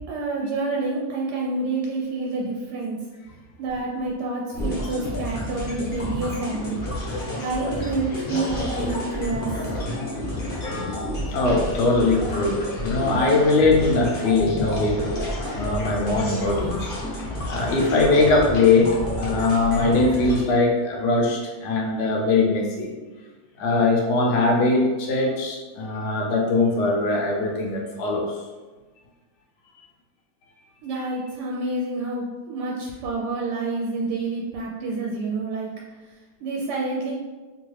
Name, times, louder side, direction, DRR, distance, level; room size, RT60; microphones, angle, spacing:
voice 1, 0.1-3.0 3.6-6.8 7.4-9.5 30.8-35.7 36.4-37.1, right 3 dB, 80° right, -3 dB, 1.1 m, -28 dB
sound 1, 4.5-20.4, left 1 dB, 50° left, 0.7 m, -30 dB
voice 2, 11.3-15.0 15.4-22.9 23.6-28.4, left 3 dB, 75° left, -1 dB, 1.2 m, -21 dB
3.1 x 2.3 x 3.2 m, 1.3 s
omnidirectional pair, 1.8 m